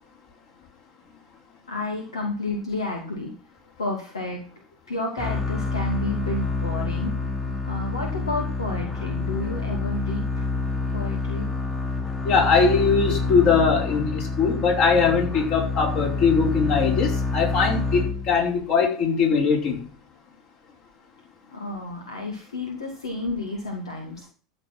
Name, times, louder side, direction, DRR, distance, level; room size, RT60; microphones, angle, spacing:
voice 1, 1.7-3.4 3.8-7.1 7.7-10.4 10.9-11.5 21.5-24.3, left 2 dB, 75° left, 2 dB, 2.5 m, -31 dB
sound 1, 5.2-18.6, left 3 dB, 15° left, 1.9 m, -27 dB
voice 2, 12.2-19.8, left 5 dB, 45° left, 0 dB, 5.2 m, -21 dB
13.5 x 7.0 x 6.2 m, 0.41 s
figure-of-eight pair, 85°, 3 cm